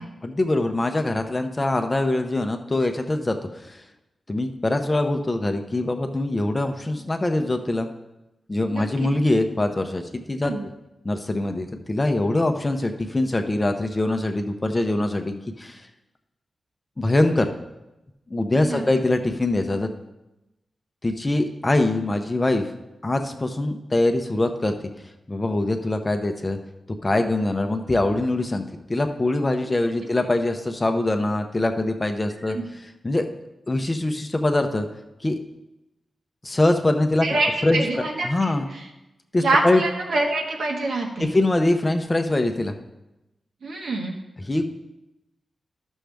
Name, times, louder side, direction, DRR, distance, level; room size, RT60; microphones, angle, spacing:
voice 1, 0.2-3.8 4.3-7.9 8.5-10.7 11.0-15.8 17.0-17.5 18.3-19.9 21.0-22.7 23.0-24.7 25.3-26.6 27.0-28.6 28.9-33.3 33.7-34.9 35.2-35.4 36.4-38.7 39.3-39.8 41.2-42.7 44.4-44.7, left 2 dB, 20° left, 6 dB, 0.6 m, -23 dB
voice 2, 8.7-9.1 10.4-10.6 18.6-18.8 37.2-38.5 39.4-41.3 43.6-44.1, right 2 dB, 70° right, 1 dB, 1.4 m, -25 dB
13.0 x 6.2 x 3.4 m, 0.96 s
wide cardioid pair, 175°, 0 cm